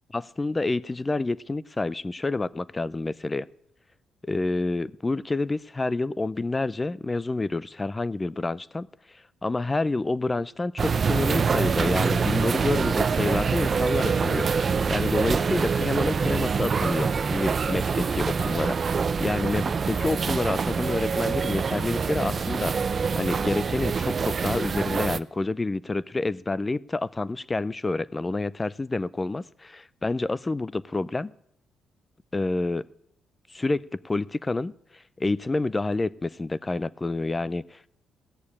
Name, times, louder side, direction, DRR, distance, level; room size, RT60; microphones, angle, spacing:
voice 1, 0.1-3.5 4.2-8.9 9.4-22.7 23.1-31.3 32.3-32.9 33.5-34.7 35.2-37.9, left 2 dB, 20° left, 20 dB, 0.4 m, -28 dB
sound 1, 10.8-25.2, right 5 dB, 40° right, 0.5 m, -25 dB
17.0 x 6.8 x 8.5 m, 0.73 s
cardioid pair, 90°, 0 cm